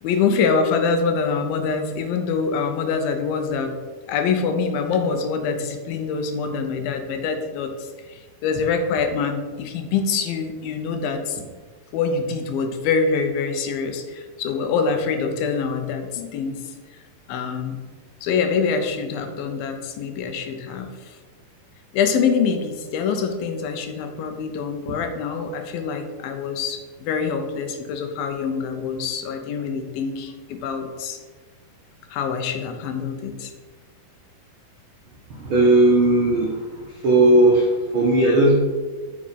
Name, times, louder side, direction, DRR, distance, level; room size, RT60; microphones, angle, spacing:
voice 1, 0.0-3.7 4.1-11.4 11.9-16.6 17.3-17.8 18.2-21.2 21.9-31.2 32.1-33.5, left 5 dB, 80° left, 6 dB, 2.6 m, -25 dB
voice 2, 35.3-36.6 37.0-38.5, right 2 dB, 85° right, -2 dB, 1.1 m, -16 dB
8.5 x 5.6 x 5.2 m, 1.4 s
omnidirectional pair, 4.3 m